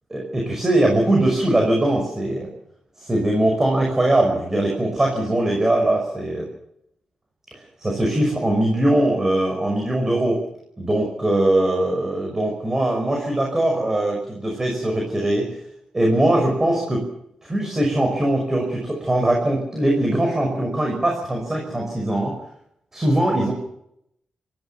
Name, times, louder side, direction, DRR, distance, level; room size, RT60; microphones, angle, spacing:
voice 1, 0.1-2.5 3.0-6.4 7.8-10.4 10.8-15.6 15.9-17.0 17.4-22.3 22.9-23.5, right 1 dB, 20° right, 0 dB, 5.7 m, -21 dB
26.5 x 15.0 x 7.0 m, 0.76 s
wide cardioid pair, 125°, 2 cm